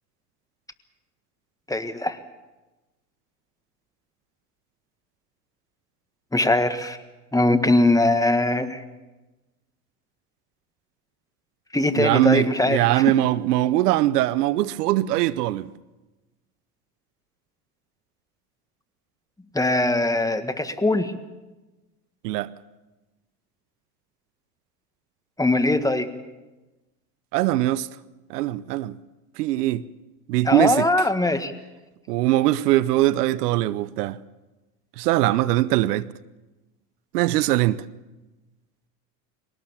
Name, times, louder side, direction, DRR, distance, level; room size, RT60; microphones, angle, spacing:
voice 1, 1.7-2.2 6.3-7.0 7.3-8.8 11.7-13.0 19.5-21.1 25.4-26.1 30.4-31.5, left 2 dB, 5° left, 1.6 m, -21 dB
voice 2, 12.0-15.7 22.2-22.5 27.3-27.9 28.3-29.0 29.4-29.8 30.3-30.9 32.1-34.2 35.0-36.1 37.1-37.8, right 15 dB, 80° right, 0.8 m, -21 dB
22.5 x 18.5 x 7.2 m
supercardioid pair, 95°, 46 cm